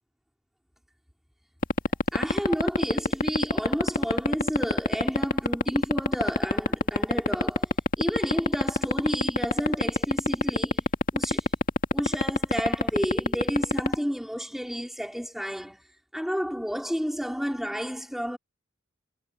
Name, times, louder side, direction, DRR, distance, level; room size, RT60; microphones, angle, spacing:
sound 1, 1.6-13.9, left 2 dB, 40° left, 2.2 m, -20 dB
voice 1, 2.1-10.9 11.1-11.5 11.9-15.8 16.1-18.4, equal, ahead, 4.6 m, -31 dB
head